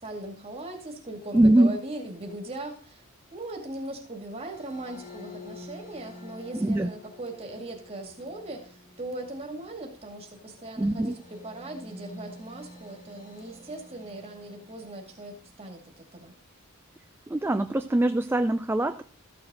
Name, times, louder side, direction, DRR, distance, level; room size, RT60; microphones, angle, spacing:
voice 1, 0.0-3.0 3.3-16.3, right 1 dB, 25° right, 3 dB, 2.2 m, -39 dB
voice 2, 1.3-1.8 6.5-6.9 10.8-11.1 17.3-19.0, right 1 dB, 10° right, 8 dB, 0.4 m, -23 dB
sound 1, 4.3-15.7, left 1 dB, 40° left, 3.8 m, -49 dB
13.5 x 6.8 x 3.7 m, 0.42 s
head